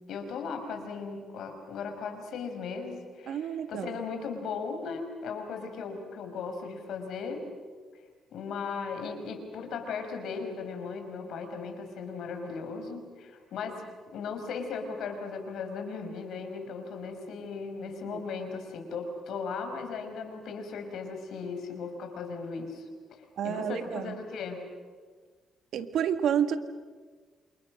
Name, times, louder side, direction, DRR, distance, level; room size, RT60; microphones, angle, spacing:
voice 1, 0.1-7.5 8.3-13.8 14.1-24.6, left 5 dB, 75° left, 5 dB, 5.5 m, -37 dB
voice 2, 3.3-4.0 18.1-18.2 23.4-24.2 25.7-26.6, right 9 dB, 75° right, 9 dB, 1.8 m, -30 dB
28.5 x 27.5 x 6.5 m, 1.5 s
cardioid pair, 90°, 0 cm